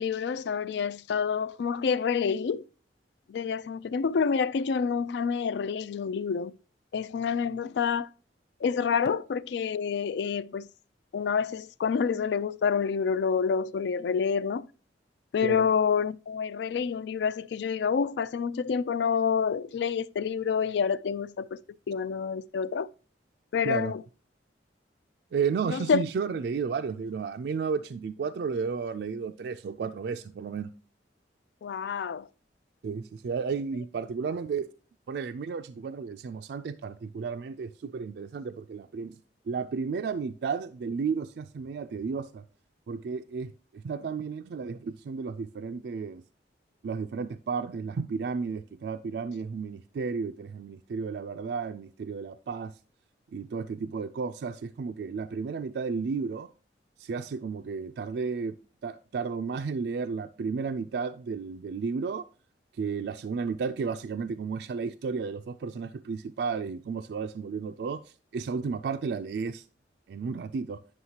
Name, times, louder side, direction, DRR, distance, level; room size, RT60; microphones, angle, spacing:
voice 1, 0.0-2.6 3.3-6.5 6.9-8.1 8.6-10.7 11.1-14.7 15.3-21.6 21.9-22.9 23.5-24.0 25.7-26.0 31.6-32.3, left 6 dB, 70° left, 0.3 m, -28 dB
voice 2, 25.3-30.7 32.8-34.7 35.1-39.2 39.5-42.4 42.9-46.2 46.8-52.7 53.3-56.5 57.0-58.6 58.8-62.2 62.8-68.0 68.3-69.6 70.1-70.8, right 5 dB, 60° right, 0.3 m, -33 dB
9.5 x 6.4 x 2.8 m
head